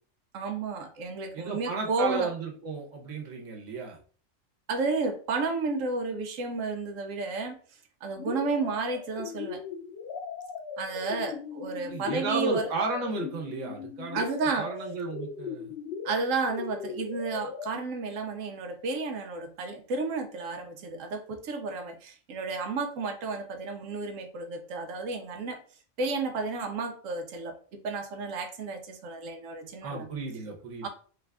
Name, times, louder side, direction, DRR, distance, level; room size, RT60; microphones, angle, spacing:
voice 1, 0.3-2.3 4.7-7.6 8.0-9.6 10.8-12.7 14.1-14.7 16.0-25.6 26.0-30.1 30.8-30.9, right 3 dB, 90° right, 6 dB, 1.1 m, -32 dB
voice 2, 1.3-4.0 11.9-14.2 14.6-15.7 29.8-30.9, right 4 dB, 70° right, 1 dB, 1.2 m, -33 dB
sound 1, 8.2-17.7, left 6 dB, 60° left, 0.7 m, -39 dB
3.4 x 2.4 x 3.4 m, 0.42 s
omnidirectional pair, 1.3 m